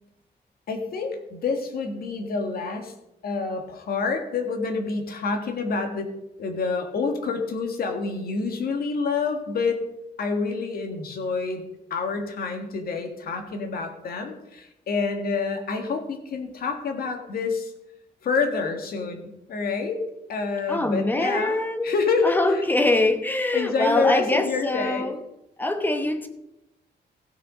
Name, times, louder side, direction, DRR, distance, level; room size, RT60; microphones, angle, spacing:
voice 1, 0.7-2.9 3.2-6.1 6.4-9.8 10.2-17.7 18.2-20.0 20.3-21.5 21.8-22.4 23.5-25.1, left 4 dB, 60° left, 1.8 m, -27 dB
voice 2, 20.7-21.9 22.2-25.2 25.6-26.3, left 2 dB, 10° left, 0.9 m, -23 dB
15.5 x 6.5 x 5.0 m
wide cardioid pair, 170°, 18 cm